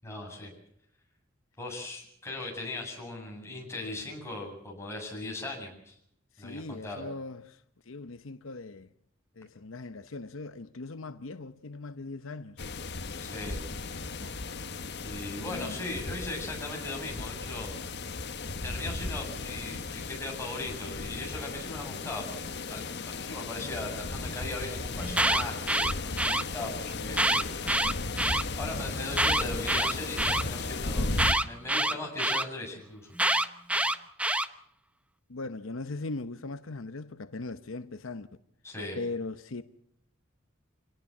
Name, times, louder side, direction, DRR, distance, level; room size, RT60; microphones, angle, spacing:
voice 1, 0.0-0.5 1.6-6.0 6.4-7.0 13.2-13.6 15.0-17.7 18.6-28.1 28.6-31.1 31.4-33.1 38.6-39.0, left 2 dB, 15° left, 7.9 m, -39 dB
voice 2, 6.4-7.6 7.9-8.9 9.4-12.6 15.3-15.8 35.3-38.3 39.0-39.6, left 3 dB, 75° left, 0.9 m, -39 dB
sound 1, 12.6-31.3, left 3 dB, 55° left, 1.3 m, -36 dB
Alarm, 25.0-26.4 27.1-28.4 29.1-30.4 31.2-32.4 33.2-34.5, right 1 dB, 5° right, 0.9 m, -26 dB
26.5 x 18.5 x 7.5 m
head